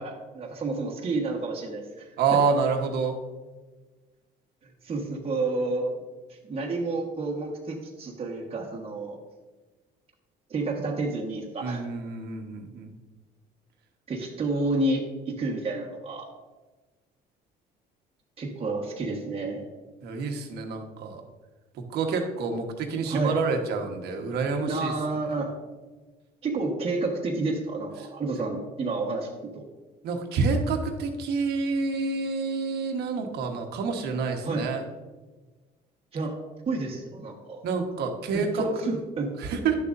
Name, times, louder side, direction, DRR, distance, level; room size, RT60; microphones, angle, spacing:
voice 1, 0.0-2.4 4.8-5.9 6.3-9.2 10.5-11.8 14.1-16.3 18.4-19.7 22.9-23.4 24.7-25.5 26.4-29.7 34.4-34.7 36.1-36.4 36.6-37.6 38.3-39.3, right 2 dB, 35° right, -1 dB, 1.3 m, -30 dB
voice 2, 2.2-3.2 11.6-12.9 20.0-21.2 21.9-24.9 30.0-34.8 37.6-39.0 39.4-39.7, right 4 dB, 75° right, 3 dB, 1.3 m, -28 dB
11.0 x 6.8 x 2.6 m, 1.3 s
cardioid pair, 110°, 17 cm